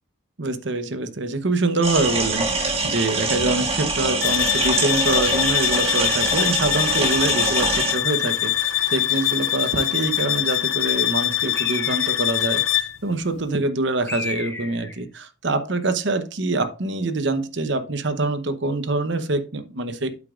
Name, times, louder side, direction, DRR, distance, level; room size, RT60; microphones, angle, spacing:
voice 1, 0.4-20.1, right 2 dB, 60° right, 0.9 m, -25 dB
sound 1, 1.8-7.9, right 3 dB, 30° right, 1.6 m, -24 dB
sound 2, 4.2-13.0, left 13 dB, 90° left, 0.6 m, -23 dB
Bird, 11.6-12.4 14.1-15.0, left 2 dB, 10° left, 1.2 m, -33 dB
8.5 x 8.3 x 2.5 m
head